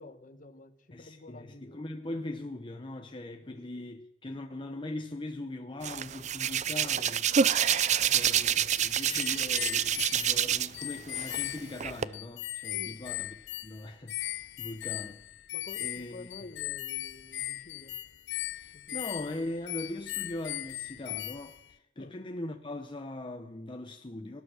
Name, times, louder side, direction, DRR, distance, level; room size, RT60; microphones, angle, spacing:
voice 1, 0.0-1.8 3.4-3.6 7.9-8.2 12.7-13.0 15.5-17.9 18.9-19.0 22.0-22.1, left 2 dB, 50° left, 1.3 m, -50 dB
voice 2, 0.9-15.2 15.8-16.3 18.5-24.4, left 1 dB, 30° left, 0.8 m, -41 dB
Hands, 5.8-10.8 11.1-12.0, right 9 dB, 40° right, 0.5 m, -27 dB
sound 1, 8.8-21.7, left 15 dB, 85° left, 0.5 m, -38 dB
18.5 x 10.5 x 6.3 m
head